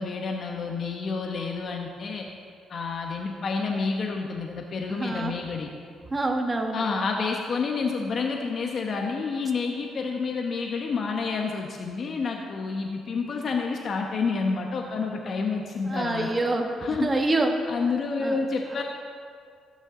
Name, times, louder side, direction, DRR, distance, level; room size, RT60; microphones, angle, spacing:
voice 1, 0.0-2.3 2.7-5.7 6.7-16.5 16.8-17.2 17.7-18.8, left 4 dB, 55° left, 2 dB, 1.0 m, -29 dB
voice 2, 4.9-5.4 6.1-6.8 15.9-16.7 17.0-17.7 18.2-18.4, right 2 dB, 25° right, 2 dB, 1.4 m, -26 dB
16.5 x 9.8 x 3.8 m, 2.2 s
cardioid pair, 90°, 0 cm